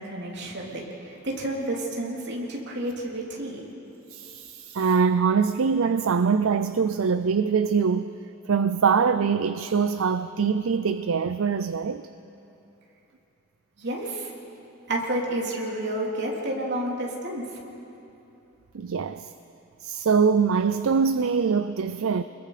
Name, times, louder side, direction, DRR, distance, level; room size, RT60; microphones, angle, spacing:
voice 1, 0.0-3.6 13.8-14.3 14.9-17.4, right 1 dB, 50° right, 3.3 m, -30 dB
voice 2, 4.1-8.1 8.5-12.1 18.7-19.3 19.8-22.2, right 6 dB, 70° right, 0.5 m, -23 dB
29.0 x 21.5 x 5.0 m
head